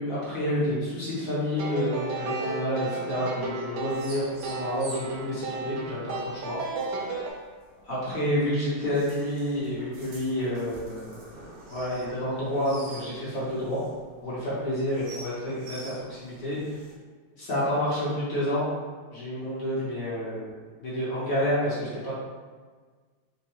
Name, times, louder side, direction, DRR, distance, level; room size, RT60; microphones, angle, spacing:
voice 1, 0.0-6.6 7.0-7.2 7.8-11.3 11.7-13.8 14.2-16.6 17.4-18.7 19.1-20.5 20.8-22.1, equal, 45° left, -8 dB, 1.5 m, -29 dB
sound 1, 1.6-7.3, right 3 dB, 85° right, 1.5 m, -34 dB
sound 2, 3.8-16.9, right 2 dB, 65° right, 1.5 m, -48 dB
4.6 x 2.5 x 3.1 m, 1.5 s
omnidirectional pair, 2.3 m